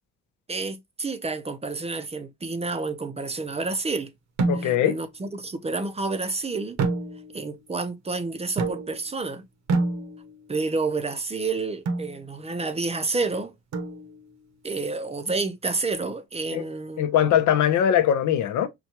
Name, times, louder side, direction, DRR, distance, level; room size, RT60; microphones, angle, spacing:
voice 1, 0.5-4.1 4.6-6.8 7.3-9.4 10.5-13.5 14.6-17.5, right 3 dB, 20° right, 0.5 m, -29 dB
sound 1, 4.4-5.0 6.8-7.5 8.6-9.2 9.7-10.5 11.9-12.2 13.7-14.3, right 3 dB, 60° right, 0.8 m, -28 dB
voice 2, 4.5-5.0 16.5-16.6 17.0-18.7, left 10 dB, 75° left, 0.6 m, -21 dB
4.3 x 2.3 x 2.8 m
cardioid pair, 90°, 30 cm